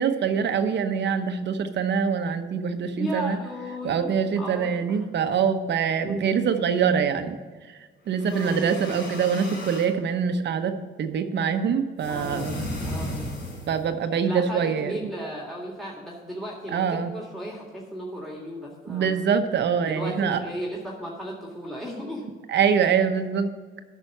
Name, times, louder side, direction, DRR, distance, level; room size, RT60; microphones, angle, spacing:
voice 1, 0.0-3.4 3.8-7.3 7.7-7.8 8.1-12.7 13.7-14.9 16.7-17.1 18.9-20.4 22.5-23.5, right 6 dB, 60° right, 8 dB, 1.0 m, -24 dB
voice 2, 3.0-4.1 4.4-5.1 6.0-6.4 8.2-9.0 12.1-12.6 12.9-13.4 14.3-19.2 19.8-22.3, equal, ahead, -2 dB, 2.0 m, -35 dB
sound 1, 8.1-9.9 12.0-13.9, left 1 dB, 65° left, 3.6 m, -35 dB
9.1 x 6.1 x 7.3 m, 1.4 s
cardioid pair, 90°, 20 cm